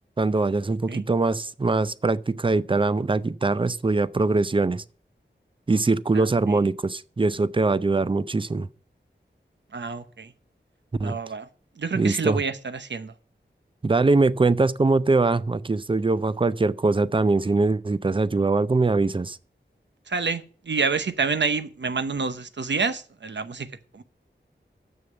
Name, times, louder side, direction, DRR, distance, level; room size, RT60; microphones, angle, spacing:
voice 1, 0.2-4.8 5.7-8.7 11.0-11.2 11.9-12.4 13.8-19.4, right 3 dB, 25° right, 0.5 m, -22 dB
voice 2, 6.1-6.7 9.7-10.3 11.0-11.5 11.8-13.1 20.1-23.7 23.9-24.0, right 5 dB, 70° right, 0.9 m, -28 dB
7.1 x 6.6 x 7.9 m
wide cardioid pair, 70°, 19 cm